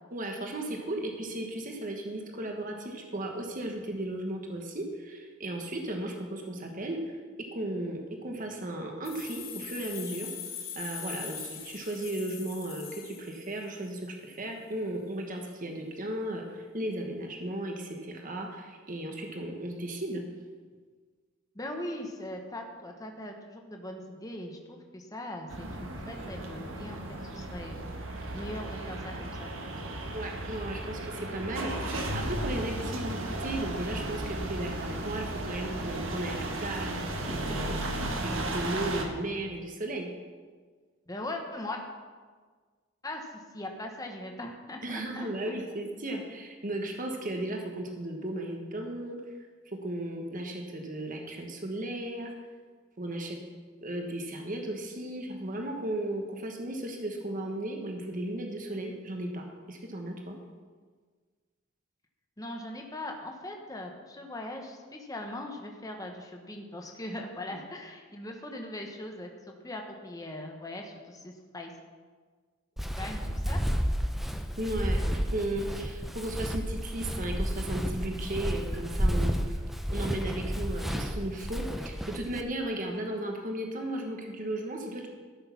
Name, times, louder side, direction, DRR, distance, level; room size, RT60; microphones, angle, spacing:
voice 1, 0.1-10.3 10.7-20.2 30.1-40.1 44.8-49.2 49.7-52.3 53.0-53.4 53.8-60.4 74.6-79.6 79.9-85.1, right 1 dB, 40° right, 2 dB, 1.3 m, -35 dB
sound 1, 9.0-13.8, left 8 dB, 80° left, 2.9 m, -42 dB
voice 2, 21.5-27.0 27.2-27.8 28.3-29.5 41.1-41.8 43.0-43.3 43.5-45.3 62.4-71.7 73.0-73.6, left 1 dB, 20° left, 2 dB, 1.1 m, -40 dB
sound 2, 25.5-39.0, right 1 dB, 70° right, 1.4 m, -35 dB
Walk footsteps, 72.8-82.4, equal, ahead, 0.6 m, -31 dB
13.5 x 6.5 x 5.9 m, 1.5 s
head